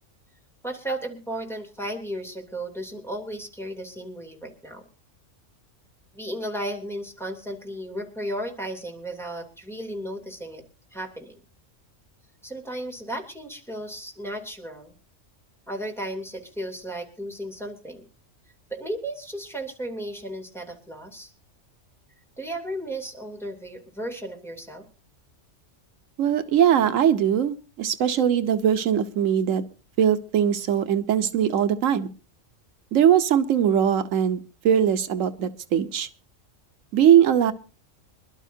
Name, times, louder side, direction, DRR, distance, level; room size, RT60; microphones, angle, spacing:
voice 1, 0.6-4.8 6.1-10.6 10.9-11.4 12.4-14.9 15.7-18.1 18.7-21.3 22.4-24.9, right 1 dB, ahead, -1 dB, 3.0 m, -34 dB
voice 2, 26.2-29.6 30.0-32.1 32.9-36.1 36.9-37.5, right 9 dB, 85° right, 10 dB, 1.2 m, -21 dB
26.5 x 12.0 x 2.7 m, 0.32 s
omnidirectional pair, 1.3 m